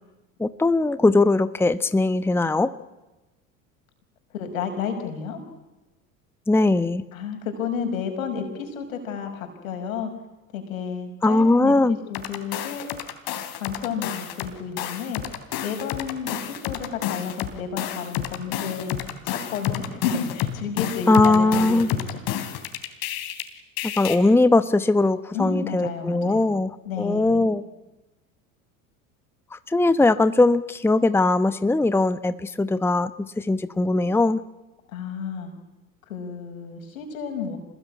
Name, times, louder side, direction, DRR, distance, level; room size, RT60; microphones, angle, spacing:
voice 1, 0.4-2.7 6.5-7.0 11.2-12.0 21.1-21.9 24.0-27.6 29.5-34.4, left 2 dB, 5° left, 13 dB, 1.0 m, -20 dB
voice 2, 4.3-5.4 7.1-10.1 10.5-12.9 13.5-15.2 15.6-18.9 19.2-22.2 25.3-26.5 26.8-27.5 34.9-35.5 36.1-37.6, left 6 dB, 80° left, 5 dB, 5.9 m, -31 dB
sound 1, 12.1-14.5 14.8-23.4 23.8-24.1, left 11 dB, 60° left, 3.4 m, -30 dB
27.0 x 20.5 x 9.7 m, 1.1 s
hypercardioid pair, 75°, 41 cm